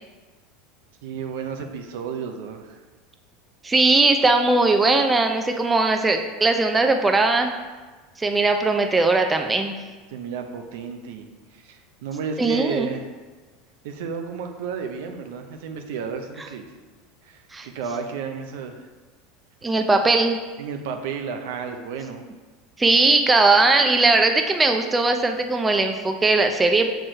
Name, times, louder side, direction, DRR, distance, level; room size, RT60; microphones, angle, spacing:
voice 1, 1.0-2.8 10.1-11.3 11.5-13.0 13.8-16.7 17.2-18.9 20.6-22.2, right 6 dB, 70° right, 5 dB, 0.7 m, -32 dB
voice 2, 3.6-7.5 8.2-9.7 12.4-12.9 17.5-17.7 19.6-20.4 22.8-26.9, right 3 dB, 15° right, 5 dB, 0.7 m, -19 dB
6.1 x 4.6 x 4.5 m, 1.3 s
hypercardioid pair, 90°, 0 cm